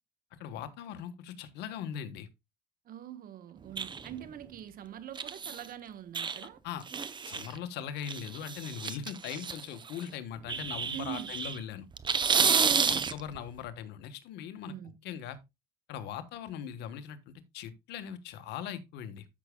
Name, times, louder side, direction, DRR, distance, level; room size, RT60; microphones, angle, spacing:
voice 1, 0.3-2.3 6.6-6.8 7.3-11.9 12.9-14.7 15.0-15.4 15.9-19.3, left 9 dB, 85° left, 1.3 m, -40 dB
voice 2, 2.8-6.6 10.9-11.3 12.4-13.1 14.6-15.0, right 11 dB, 60° right, 1.2 m, -44 dB
sound 1, 3.8-4.3 5.2-5.7 6.1-6.4 6.9-7.6 8.0-10.0 10.5-11.6 11.9-13.4, right 6 dB, 25° right, 0.6 m, -30 dB
13.5 x 6.1 x 2.2 m
cardioid pair, 110°, 17 cm